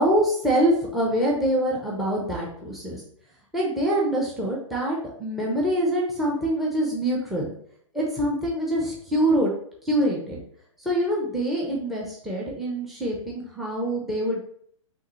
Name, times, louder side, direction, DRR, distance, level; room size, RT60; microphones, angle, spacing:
voice 1, 0.0-3.0 3.5-7.5 7.9-9.5 9.8-10.4 10.8-14.4, right 1 dB, ahead, -2 dB, 0.8 m, -25 dB
5.4 x 3.1 x 3.2 m, 0.64 s
hypercardioid pair, 145°, 17 cm